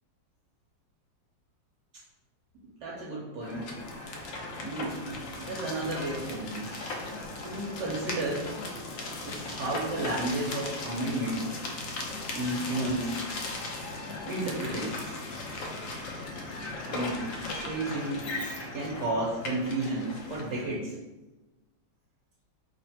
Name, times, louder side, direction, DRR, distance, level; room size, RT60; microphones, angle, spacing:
voice 1, 2.8-3.7 4.6-6.7 7.4-8.5 9.2-11.5 12.3-13.1 14.2-15.1 16.8-17.3 17.6-18.2 18.7-21.0, right 2 dB, 70° right, -6 dB, 1.3 m, -32 dB
sound 1, 3.4-20.7, left 2 dB, 85° left, 0.7 m, -37 dB
3.1 x 2.5 x 4.1 m, 1.1 s
omnidirectional pair, 2.1 m